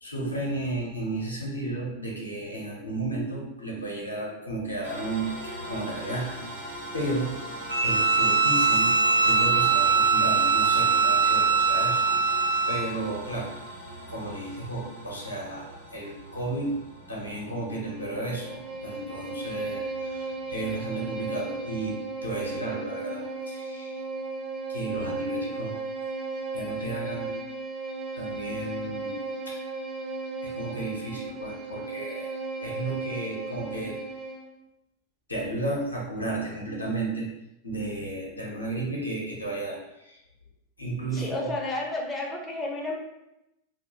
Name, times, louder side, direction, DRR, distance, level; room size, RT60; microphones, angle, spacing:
voice 1, 0.0-6.4 6.9-7.3 7.8-8.9 9.2-13.6 14.1-16.8 17.1-24.0 24.7-25.8 26.5-27.3 28.1-29.2 29.5-29.6 30.4-34.0 35.3-37.3 37.6-40.2 40.8-41.5, right 2 dB, 80° left, -3 dB, 0.6 m, -33 dB
sound 1, 4.8-21.9, equal, 90° right, 0.9 m, -41 dB
Bowed string instrument, 7.7-12.9, right 4 dB, 75° right, 0.3 m, -22 dB
Bowed string instrument 2, 17.9-34.5, right 3 dB, 30° right, 0.6 m, -35 dB
voice 2, 41.1-43.0, left 2 dB, 15° left, -2 dB, 0.5 m, -31 dB
2.1 x 2.0 x 2.9 m, 0.89 s
figure-of-eight pair, 90°, 0 cm